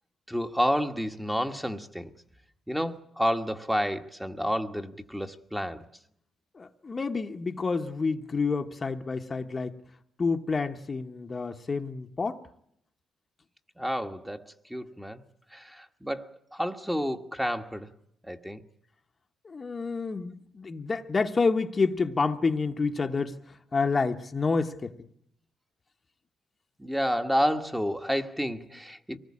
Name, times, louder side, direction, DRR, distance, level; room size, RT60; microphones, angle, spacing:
voice 1, 0.3-2.1 2.7-5.9 13.8-15.2 15.5-17.9 18.2-18.6 26.8-29.2, equal, 5° right, 1.4 m, -30 dB
voice 2, 6.6-9.7 10.2-12.4 19.4-23.3 23.7-24.9, left 4 dB, 30° left, 1.1 m, -28 dB
24.5 x 19.0 x 8.6 m
cardioid pair, 90°, 0 cm